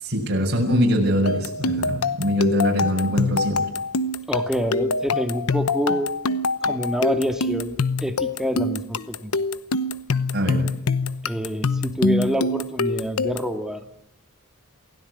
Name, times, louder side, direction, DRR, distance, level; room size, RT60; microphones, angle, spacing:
voice 1, 0.0-3.6 10.3-10.7, equal, 50° right, 0 dB, 6.7 m, -22 dB
sound 1, 1.3-13.6, left 3 dB, 85° left, 1.0 m, -25 dB
voice 2, 4.3-6.1 6.6-9.3 11.2-13.8, equal, 5° right, 6 dB, 1.9 m, -27 dB
28.0 x 16.5 x 9.8 m, 0.72 s
head